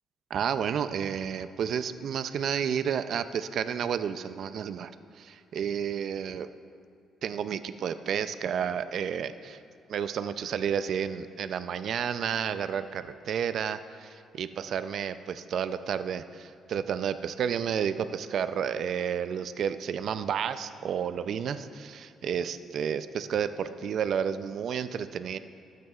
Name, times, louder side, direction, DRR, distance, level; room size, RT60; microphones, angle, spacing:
voice 1, 0.3-4.9 5.2-6.5 7.2-9.6 9.9-25.4, right 8 dB, 65° right, 12 dB, 0.4 m, -31 dB
20.0 x 9.3 x 2.4 m, 2.5 s
cardioid pair, 90°, 0 cm